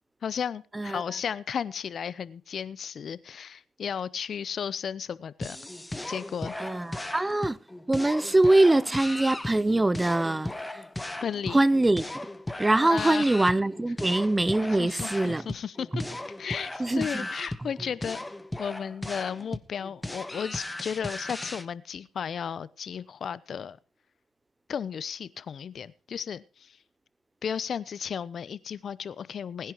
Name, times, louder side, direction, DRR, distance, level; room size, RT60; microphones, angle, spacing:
voice 1, 0.2-5.6 6.1-6.5 11.1-11.6 12.8-13.2 14.8-16.0 16.4-18.2 18.6-23.8 24.7-26.8 27.4-29.7, left 7 dB, 55° left, 0.7 m, -34 dB
sound 1, 5.4-21.7, left 1 dB, 10° left, 1.0 m, -37 dB
voice 2, 6.6-7.6 7.9-10.8 11.5-12.3 12.6-15.5 15.9-16.1 16.8-17.3, right 2 dB, 15° right, 0.5 m, -23 dB
20.0 x 10.5 x 3.0 m
cardioid pair, 90°, 0 cm